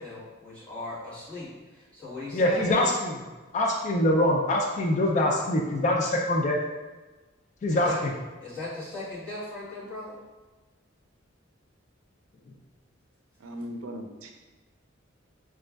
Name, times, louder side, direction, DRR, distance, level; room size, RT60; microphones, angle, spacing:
voice 1, 0.0-2.9 7.7-8.0 8.4-10.2, left 2 dB, 5° left, -12 dB, 1.3 m, -38 dB
voice 2, 2.3-3.2 3.5-6.6 7.6-8.1, left 1 dB, 35° left, 0 dB, 0.3 m, -24 dB
voice 3, 13.4-14.3, equal, 90° right, 3 dB, 0.4 m, -38 dB
4.9 x 2.4 x 2.2 m, 1.2 s
head